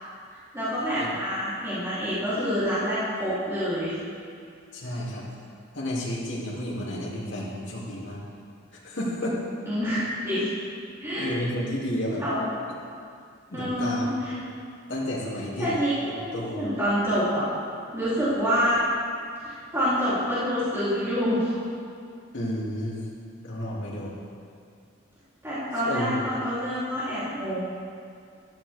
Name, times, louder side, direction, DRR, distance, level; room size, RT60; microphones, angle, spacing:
voice 1, 0.5-4.0 9.7-10.5 11.0-11.3 12.2-12.6 13.5-14.3 15.6-17.5 17.9-18.8 19.4-21.6 25.4-27.6, equal, 15° right, -13 dB, 3.5 m, -27 dB
voice 2, 4.7-5.2 5.7-8.2 8.8-9.4 11.2-12.2 13.5-14.1 14.9-15.7 16.0-16.7 22.3-23.0 23.4-24.1 25.8-26.2, left 1 dB, 65° left, -5 dB, 2.9 m, -31 dB
15.0 x 13.5 x 3.6 m, 2.3 s
head